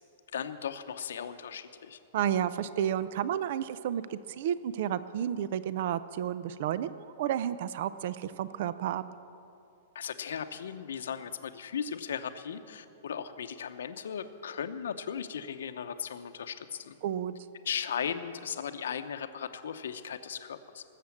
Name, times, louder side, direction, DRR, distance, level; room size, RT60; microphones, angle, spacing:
voice 1, 0.3-2.0 9.9-17.0 17.6-20.8, left 7 dB, 90° left, 9 dB, 0.8 m, -37 dB
voice 2, 2.1-9.0 17.0-17.3, right 10 dB, 50° right, 15 dB, 0.4 m, -31 dB
19.5 x 7.5 x 7.2 m, 2.6 s
supercardioid pair, 165°, 0 cm